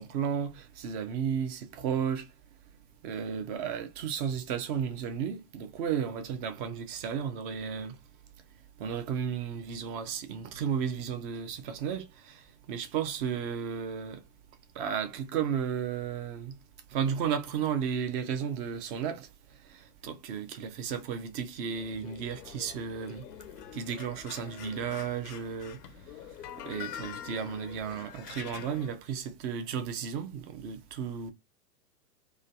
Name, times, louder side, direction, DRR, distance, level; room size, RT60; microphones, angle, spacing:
voice 1, 0.0-2.3 3.0-8.0 8.8-12.4 12.7-14.2 14.8-16.6 16.9-19.3 20.0-23.3 23.7-25.8 26.7-31.3, right 7 dB, 35° right, 0.6 m, -33 dB
sound 1, 21.7-29.0, left 10 dB, 75° left, 0.6 m, -45 dB
3.1 x 2.3 x 2.5 m
hypercardioid pair, 105°, 48 cm